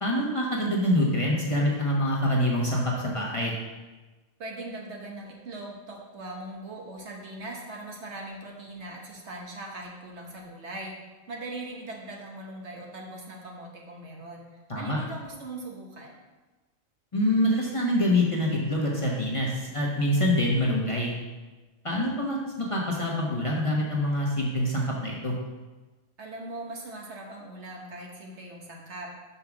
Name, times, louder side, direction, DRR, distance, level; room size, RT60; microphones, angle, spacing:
voice 1, 0.0-3.5 14.7-15.0 17.1-21.1 21.8-25.3, left 1 dB, 25° left, -3 dB, 1.2 m, -25 dB
voice 2, 4.4-10.9 11.3-16.2 26.2-29.1, right 2 dB, 65° right, -1 dB, 1.4 m, -40 dB
5.6 x 5.5 x 6.0 m, 1.2 s
omnidirectional pair, 1.3 m